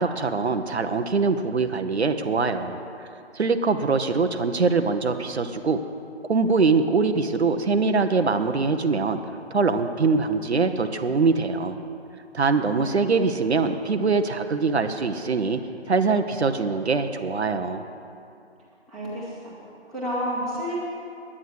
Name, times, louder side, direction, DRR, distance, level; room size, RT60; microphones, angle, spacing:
voice 1, 0.0-2.8 3.3-5.8 6.3-9.2 9.5-11.8 12.3-15.6 15.9-17.9, right 4 dB, 70° right, 7 dB, 0.9 m, -23 dB
voice 2, 18.9-19.5 19.9-20.8, equal, ahead, -11 dB, 1.7 m, -31 dB
9.9 x 9.7 x 9.4 m, 2.6 s
figure-of-eight pair, 160°, 34 cm